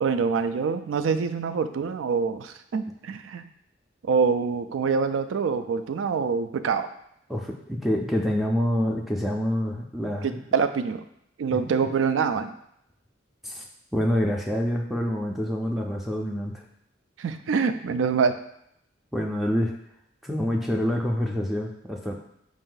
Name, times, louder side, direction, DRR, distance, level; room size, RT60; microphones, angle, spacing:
voice 1, 0.0-3.4 4.0-6.9 10.5-11.0 11.4-12.5 17.2-18.3, right 5 dB, 80° right, 10 dB, 0.4 m, -25 dB
voice 2, 7.3-10.4 11.5-11.6 13.4-13.6 13.9-16.6 19.1-19.7 20.2-22.1, equal, ahead, 0 dB, 0.4 m, -26 dB
5.0 x 2.6 x 3.8 m, 0.75 s
head